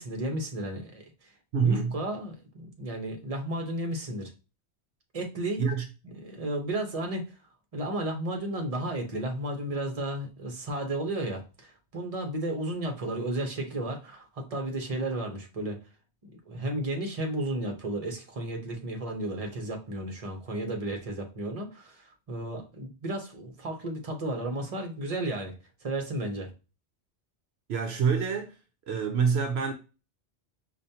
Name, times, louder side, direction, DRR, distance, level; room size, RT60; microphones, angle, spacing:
voice 1, 0.0-4.3 5.1-5.6 6.0-7.3 7.7-15.8 16.3-25.5 25.8-26.5, right 1 dB, 35° right, 1.0 m, -33 dB
voice 2, 1.5-2.0 5.6-5.9 27.7-28.6 28.9-29.7, right 6 dB, 75° right, 0.8 m, -26 dB
5.0 x 2.4 x 2.8 m
omnidirectional pair, 1.1 m